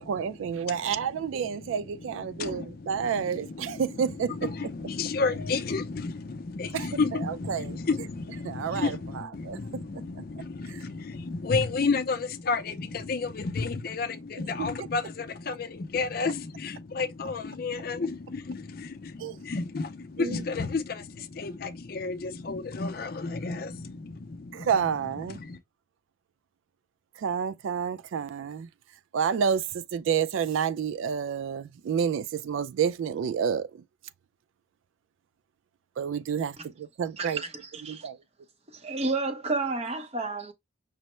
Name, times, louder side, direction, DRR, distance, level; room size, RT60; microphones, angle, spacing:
voice 1, 0.0-4.5 6.7-7.8 8.4-10.2 10.7-10.8 14.6-14.7 19.2-19.4 20.2-20.4 24.5-25.4 27.2-28.7 29.1-33.8 36.0-37.4 37.8-38.2, right 7 dB, 80° right, 0.3 m, -30 dB
voice 2, 2.2-3.8 4.4-24.7 25.3-25.6, left 4 dB, 50° left, 0.4 m, -32 dB
voice 3, 37.2-37.5 37.8-38.1 38.7-40.5, right 3 dB, 30° right, 0.7 m, -30 dB
5.4 x 2.1 x 3.0 m
head